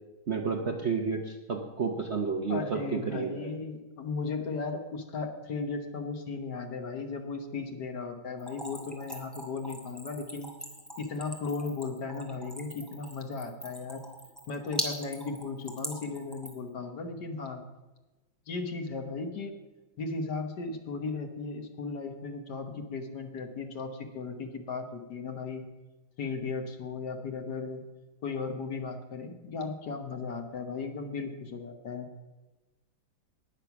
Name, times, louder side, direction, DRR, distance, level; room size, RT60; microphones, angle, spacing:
voice 1, 0.3-3.5, right 5 dB, 50° right, 2 dB, 0.9 m, -31 dB
voice 2, 2.5-10.5 11.0-14.1 14.5-17.6 18.5-19.5 20.0-25.6 26.2-27.8 28.2-32.1, left 4 dB, 60° left, 5 dB, 1.7 m, -36 dB
Splash splatter / Trickle dribble, 8.4-16.7, equal, ahead, 1.5 m, -40 dB
19.0 x 6.6 x 5.9 m, 1.1 s
omnidirectional pair, 2.2 m